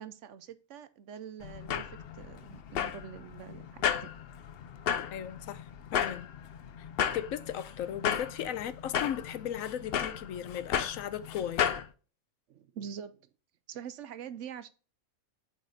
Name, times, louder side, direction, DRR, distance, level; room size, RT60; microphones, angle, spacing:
voice 1, 0.0-4.1 12.5-13.3 13.7-14.7, right 8 dB, 65° right, 0.9 m, -44 dB
sound 1, 1.4-11.9, left 8 dB, 60° left, 0.7 m, -34 dB
voice 2, 5.1-6.3 6.8-11.8, left 10 dB, 75° left, 1.0 m, -37 dB
9.2 x 4.1 x 3.9 m
omnidirectional pair, 1.5 m